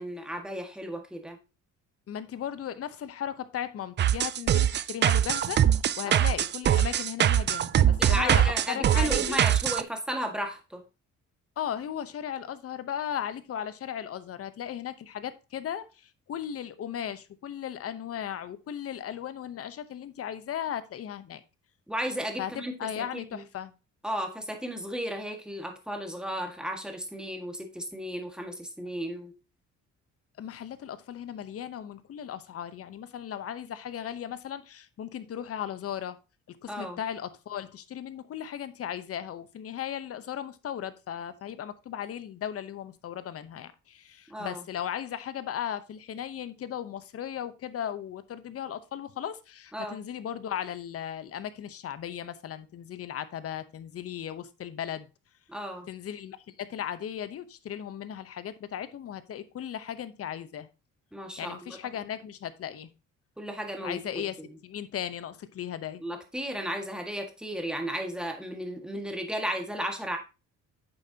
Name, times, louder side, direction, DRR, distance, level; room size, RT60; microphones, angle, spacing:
voice 1, 0.0-1.4 6.0-6.3 8.0-10.8 21.9-23.4 24.0-29.3 36.7-37.0 44.3-44.6 49.7-50.0 55.5-55.9 61.1-61.8 63.4-64.5 66.0-70.2, equal, 5° right, 3 dB, 1.7 m, -34 dB
voice 2, 2.1-5.6 6.0-9.4 11.6-21.4 22.4-23.7 30.4-36.2 36.5-55.1 55.9-60.7 61.4-62.9 63.8-64.4 64.6-66.0, left 9 dB, 50° left, 13 dB, 0.9 m, -36 dB
sound 1, 4.0-9.8, right 10 dB, 40° right, 0.4 m, -23 dB
9.0 x 7.0 x 2.8 m, 0.30 s
cardioid pair, 120°, 30 cm